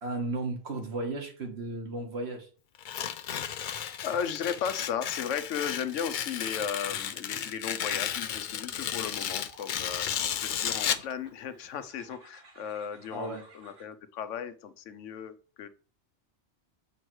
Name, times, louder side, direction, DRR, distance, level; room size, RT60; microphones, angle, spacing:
voice 1, 0.0-2.5 13.1-13.4, right 2 dB, 65° right, 4 dB, 1.6 m, -34 dB
Tearing, 2.8-11.1, left 9 dB, 60° left, 0.5 m, -33 dB
voice 2, 3.6-10.1 10.4-15.7, left 8 dB, 85° left, 12 dB, 1.0 m, -36 dB
sound 1, 9.4-13.9, right 2 dB, 90° right, 1.8 m, -57 dB
7.1 x 3.1 x 6.1 m, 0.39 s
omnidirectional pair, 1.2 m